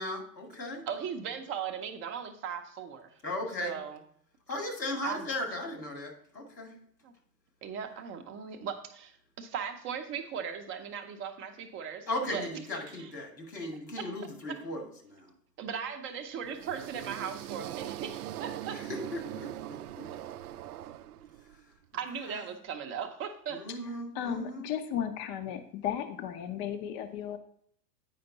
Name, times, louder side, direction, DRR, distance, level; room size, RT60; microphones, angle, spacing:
voice 1, 0.0-0.8 3.2-3.7 4.5-6.7 12.1-15.3 18.7-20.1 22.2-22.4 23.5-24.7, left 1 dB, 85° left, 2 dB, 2.4 m, -37 dB
voice 2, 0.9-3.2 3.6-4.0 5.0-5.3 7.0-7.1 7.6-12.4 12.9-13.1 14.5-14.6 15.6-18.8 21.9-23.6, right 7 dB, 25° right, 5 dB, 0.7 m, -38 dB
sound 1, 16.4-21.6, right 12 dB, 65° right, 0.6 m, -41 dB
voice 3, 24.1-27.4, left 9 dB, 30° left, 7 dB, 0.6 m, -35 dB
9.0 x 5.1 x 3.9 m, 0.65 s
figure-of-eight pair, 100°, 50 cm